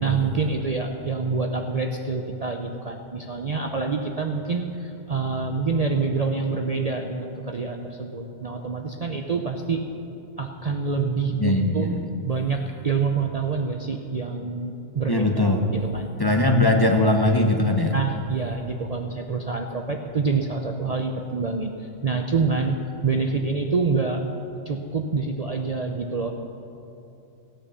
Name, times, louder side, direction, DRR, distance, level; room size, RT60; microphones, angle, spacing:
voice 1, 0.0-9.8 10.4-11.9 12.2-16.1 17.9-22.8 23.0-24.2 24.7-26.3, right 4 dB, 40° right, 3 dB, 0.6 m, -26 dB
voice 2, 11.4-12.1 15.1-15.6 16.2-17.9, left 1 dB, 20° left, 2 dB, 0.8 m, -20 dB
16.5 x 9.0 x 6.9 m, 2.8 s
omnidirectional pair, 1.3 m